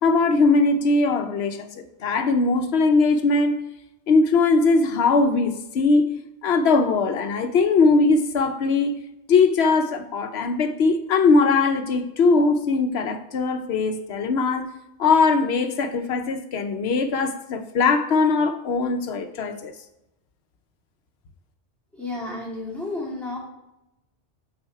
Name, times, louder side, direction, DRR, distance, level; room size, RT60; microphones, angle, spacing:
voice 1, 0.0-3.6 4.1-6.1 6.4-9.0 9.3-19.7, left 3 dB, 65° left, 0.9 m, -20 dB
voice 2, 21.9-23.4, left 2 dB, ahead, 2.2 m, -31 dB
8.6 x 4.2 x 4.5 m
omnidirectional pair, 1.2 m